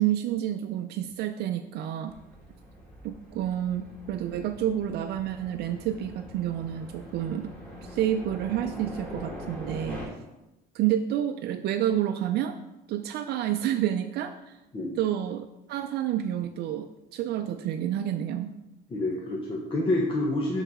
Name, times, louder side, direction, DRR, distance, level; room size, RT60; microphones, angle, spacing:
voice 1, 0.0-2.1 3.0-7.5 7.8-10.1 10.7-12.5 12.9-14.6 15.0-18.6, right 11 dB, 70° right, 7 dB, 0.5 m, -29 dB
sound 1, 2.1-10.1, left 1 dB, 5° left, 2.8 m, -43 dB
voice 2, 18.9-20.6, left 1 dB, 30° left, -2 dB, 1.2 m, -28 dB
9.1 x 4.1 x 4.8 m, 0.97 s
cardioid pair, 110°, 17 cm